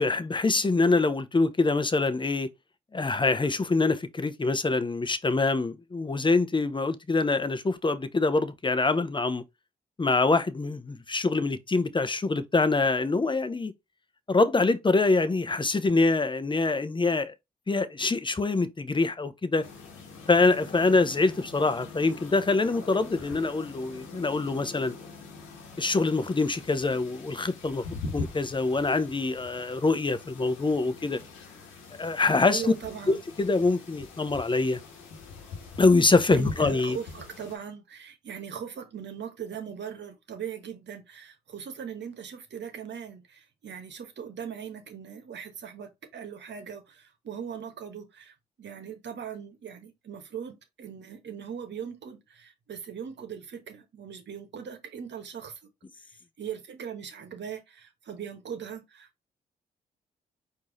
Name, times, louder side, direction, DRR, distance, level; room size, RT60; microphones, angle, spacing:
voice 1, 0.0-2.5 2.9-9.4 10.0-13.7 14.3-17.3 17.7-19.7 20.3-24.9 25.8-27.8 28.1-31.2 32.0-32.7 33.1-34.8 35.8-37.0, left 3 dB, 25° left, 0.7 m, -25 dB
sound 1, 19.6-37.6, left 4 dB, 90° left, 1.2 m, -43 dB
voice 2, 32.5-33.2 36.3-55.6 56.4-59.1, right 8 dB, 65° right, 1.1 m, -40 dB
4.7 x 2.7 x 3.9 m
supercardioid pair, 45°, 20 cm